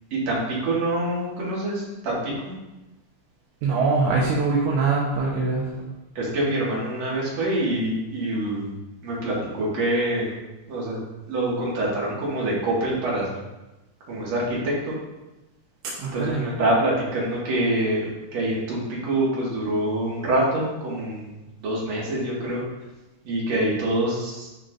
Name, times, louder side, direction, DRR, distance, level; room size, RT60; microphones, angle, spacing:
voice 1, 0.1-2.5 5.7-5.8 6.2-8.7 9.0-10.3 10.7-11.0 11.2-13.3 14.1-15.0 16.0-21.2 21.6-22.6 23.2-24.6, right 1 dB, 65° right, -6 dB, 2.9 m, -25 dB
voice 2, 3.6-5.6 16.0-16.4, right 4 dB, 80° right, -5 dB, 2.2 m, -23 dB
11.0 x 4.1 x 2.5 m, 1.0 s
omnidirectional pair, 3.4 m